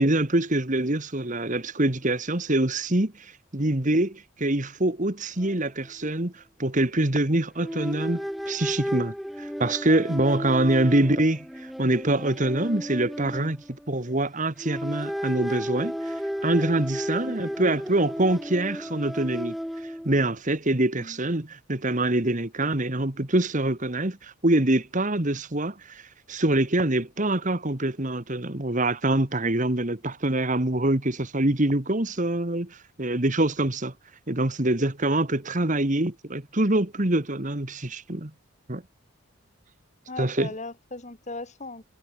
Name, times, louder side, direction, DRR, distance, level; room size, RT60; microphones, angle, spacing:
voice 1, 0.0-16.1 16.4-19.5 19.8-26.0 26.3-33.9 34.3-38.3 38.7-38.8 40.2-40.5, right 1 dB, 35° right, 1.8 m, -25 dB
sound 1, 5.4-5.5 5.8-6.0 7.6-14.2 14.6-20.2, equal, ahead, 0.7 m, -34 dB
voice 2, 40.1-41.8, left 2 dB, 35° left, 2.1 m, -38 dB
head